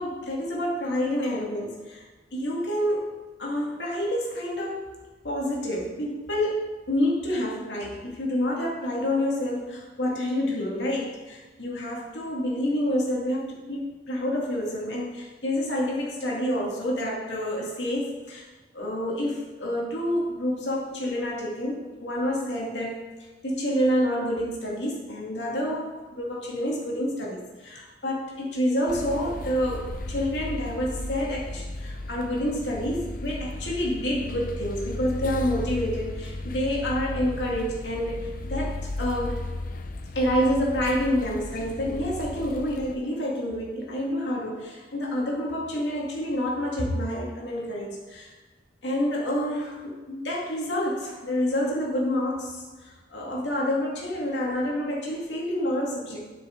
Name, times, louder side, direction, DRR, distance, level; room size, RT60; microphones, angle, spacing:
voice 1, 0.0-2.0 2.3-4.9 5.2-18.5 18.7-23.0 23.4-39.4 40.1-48.3 48.8-56.2, equal, 80° left, -3 dB, 2.2 m, -28 dB
sound 1, 28.9-42.9, left 2 dB, 50° left, 0.6 m, -35 dB
12.0 x 6.0 x 3.9 m, 1.3 s
head